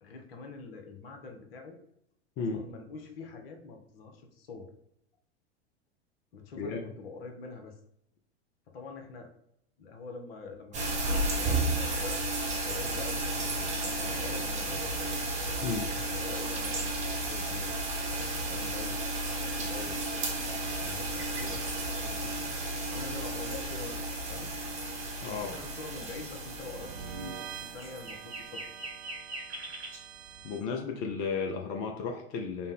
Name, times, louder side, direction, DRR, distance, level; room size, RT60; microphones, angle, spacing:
voice 1, 0.0-1.8 2.5-4.7 6.3-7.8 8.7-9.3 9.8-12.2 12.5-15.2 16.1-20.4 20.8-24.5 25.3-28.6, left 4 dB, 55° left, 4 dB, 0.8 m, -45 dB
voice 2, 2.4-2.7 6.6-6.8 15.6-15.9 25.2-25.5 30.4-32.7, left 5 dB, 25° left, 3 dB, 0.3 m, -34 dB
sound 1, 10.7-28.2, right 2 dB, 20° right, 0.8 m, -33 dB
sound 2, 13.9-30.6, right 8 dB, 40° right, 0.4 m, -49 dB
sound 3, 16.5-18.7 19.3-19.4 19.8-21.7 22.1-30.0, right 2 dB, 70° right, 1.0 m, -46 dB
3.9 x 2.1 x 3.6 m, 0.76 s
figure-of-eight pair, 85°, 34 cm